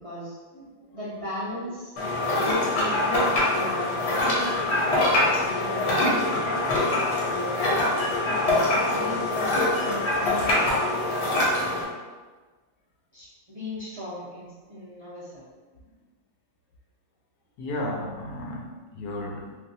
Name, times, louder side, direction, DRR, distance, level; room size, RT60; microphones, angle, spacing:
voice 1, 0.0-0.4 0.9-1.9 2.3-7.8 8.2-11.1 11.4-11.8 13.1-15.5, equal, 40° right, -11 dB, 0.5 m, -36 dB
sound 1, 2.0-11.8, left 2 dB, 55° left, 0.9 m, -24 dB
voice 2, 17.6-19.6, left 1 dB, 85° left, -1 dB, 1.1 m, -34 dB
3.2 x 2.3 x 2.6 m, 1.3 s
omnidirectional pair, 1.6 m